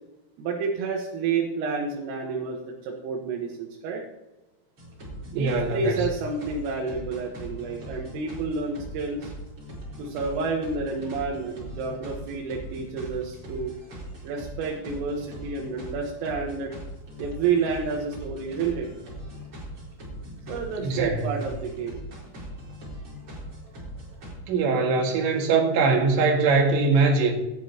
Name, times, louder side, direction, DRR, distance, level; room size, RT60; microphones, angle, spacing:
voice 1, 0.4-4.0 5.3-9.3 10.0-13.7 14.2-16.7 17.2-18.9 20.5-22.0, right 4 dB, 80° right, -1 dB, 4.0 m, -29 dB
sound 1, 4.8-24.3, equal, 30° right, 4.4 m, -40 dB
voice 2, 5.4-6.1 20.8-21.3 24.5-27.3, right 4 dB, 65° right, 1 dB, 4.0 m, -22 dB
17.0 x 10.5 x 3.0 m, 1.0 s
omnidirectional pair, 5.8 m